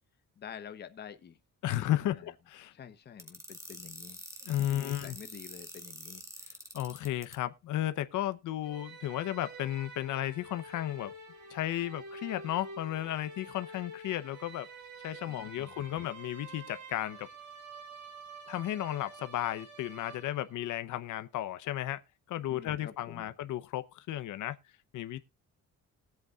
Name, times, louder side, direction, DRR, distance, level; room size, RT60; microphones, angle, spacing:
voice 1, 0.4-1.4 1.7-2.3 2.7-4.2 4.7-6.2 15.3-15.9 22.5-23.3, left 8 dB, 35° left, 0.9 m, -48 dB
voice 2, 1.6-2.7 4.5-5.2 6.7-11.1 11.5-14.7 15.0-17.3 18.5-22.0 22.3-24.6 24.9-25.2, left 13 dB, 85° left, 0.8 m, -34 dB
sound 1, 3.2-7.3, right 1 dB, 10° right, 1.4 m, -46 dB
sound 2, 8.6-20.7, right 2 dB, 75° right, 3.5 m, -48 dB
20.0 x 8.1 x 2.4 m
cardioid pair, 175°, 30 cm